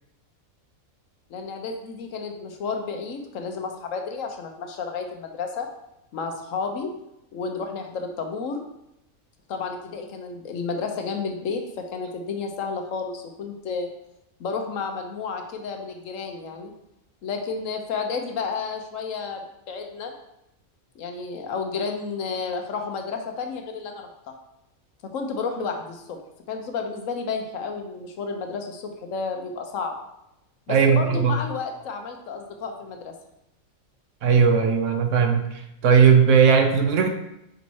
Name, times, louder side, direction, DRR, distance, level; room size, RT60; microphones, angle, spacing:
voice 1, 1.3-5.7 6.1-6.9 7.3-8.6 9.5-13.9 14.4-16.7 17.2-20.1 20.9-24.1 25.1-26.2 26.5-29.9 30.7-33.1, left 5 dB, 70° left, 4 dB, 1.1 m, -31 dB
voice 2, 30.7-31.4 34.2-35.4 35.8-37.1, right 6 dB, 65° right, 6 dB, 0.9 m, -17 dB
5.2 x 4.1 x 4.6 m, 0.85 s
omnidirectional pair, 1.5 m